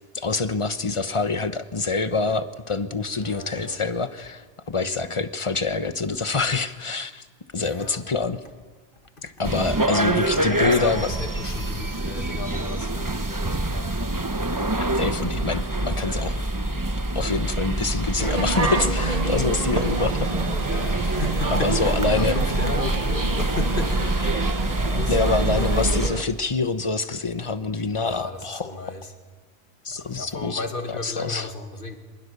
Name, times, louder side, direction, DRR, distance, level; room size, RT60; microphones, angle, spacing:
voice 1, 0.1-7.2 7.5-8.4 9.2-11.1 14.9-16.4 17.1-20.3 21.5-22.4 25.1-28.7 29.8-30.6 30.9-31.5, left 4 dB, 30° left, 10 dB, 1.1 m, -26 dB
voice 2, 3.1-3.8 4.8-5.2 7.6-8.0 9.8-14.2 20.6-24.0 24.3-25.8 28.0-29.1 29.9-32.0, left 3 dB, 55° left, 5 dB, 2.4 m, -35 dB
sound 1, 9.4-26.1, right 2 dB, 20° right, 1.0 m, -25 dB
sound 2, 18.2-26.2, right 3 dB, 40° right, 1.3 m, -29 dB
28.0 x 24.5 x 6.8 m, 1.5 s
omnidirectional pair, 1.0 m